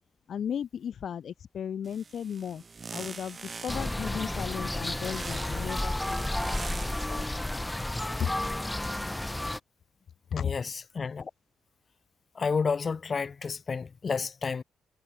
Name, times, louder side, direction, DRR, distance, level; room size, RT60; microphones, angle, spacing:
voice 1, 0.3-2.6 2.9-6.8 7.1-7.3 10.4-10.5, left 8 dB, 60° left, 1.8 m, -36 dB
sound 1, 1.8-4.1 5.0-7.3, right 4 dB, 35° right, 1.6 m, -43 dB
sound 2, 3.7-9.6, left 1 dB, 10° left, 0.7 m, -32 dB
voice 2, 10.3-11.3 12.3-14.6, left 5 dB, 35° left, 2.4 m, -31 dB
cardioid pair, 90°, 0 cm